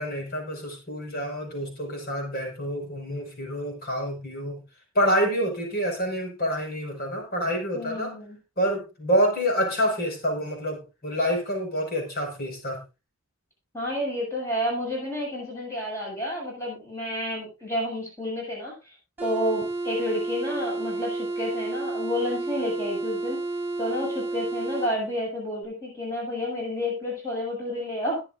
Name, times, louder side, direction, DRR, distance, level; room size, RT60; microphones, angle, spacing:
voice 1, 0.0-4.6 4.9-8.1 8.6-12.8, equal, 50° left, 3 dB, 5.5 m, -27 dB
voice 2, 7.7-8.4 13.7-19.0 19.2-23.4 23.8-28.2, left 1 dB, 15° left, -4 dB, 7.1 m, -30 dB
sound 1, 19.2-24.9, right 3 dB, 10° right, 7.7 m, -31 dB
21.0 x 7.9 x 2.6 m, 0.28 s
head